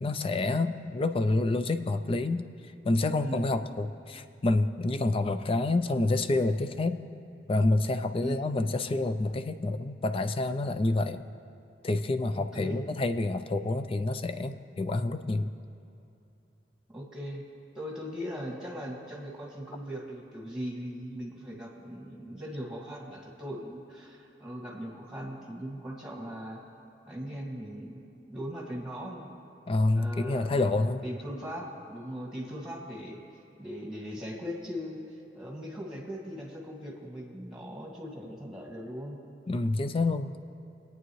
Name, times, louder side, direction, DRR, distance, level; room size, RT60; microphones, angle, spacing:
voice 1, 0.0-2.4 2.8-7.0 7.5-11.2 11.8-15.5 29.7-31.0 39.5-40.4, left 2 dB, 30° left, 10 dB, 0.4 m, -28 dB
voice 2, 12.3-12.8 16.9-17.4 17.7-26.6 27.1-29.3 29.9-33.2 33.6-39.2, equal, 5° right, -2 dB, 2.0 m, -39 dB
23.5 x 9.1 x 3.2 m, 2.8 s
head